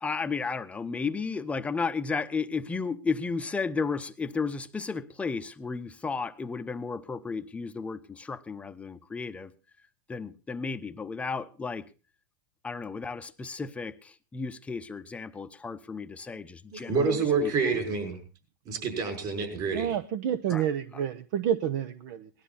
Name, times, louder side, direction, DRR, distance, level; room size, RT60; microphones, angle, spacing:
voice 1, 0.0-9.5 10.1-11.9 12.6-17.8 20.5-20.7 20.9-21.0, left 4 dB, 10° left, 9 dB, 0.8 m, -33 dB
voice 2, 16.7-18.2 18.7-19.9, right 4 dB, 40° right, 4 dB, 6.0 m, -28 dB
voice 3, 19.7-22.3, right 9 dB, 60° right, 12 dB, 0.9 m, -29 dB
19.0 x 12.5 x 4.1 m, 0.33 s
supercardioid pair, 130°, 11 cm